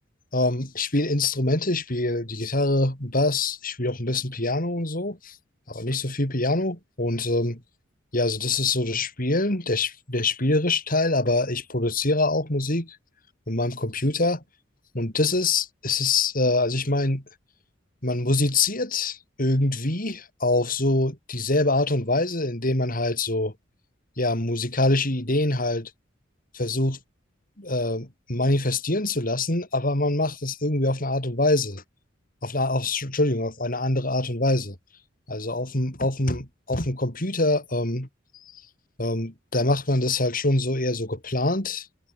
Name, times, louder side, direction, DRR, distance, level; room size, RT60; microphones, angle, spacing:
voice 1, 0.3-5.4 5.7-7.6 8.1-13.0 13.5-14.4 14.9-17.2 18.0-23.5 24.2-25.9 26.5-27.0 27.6-31.8 32.4-34.8 35.3-38.1 39.0-41.9, left 2 dB, 45° left, 5.3 m, -24 dB
head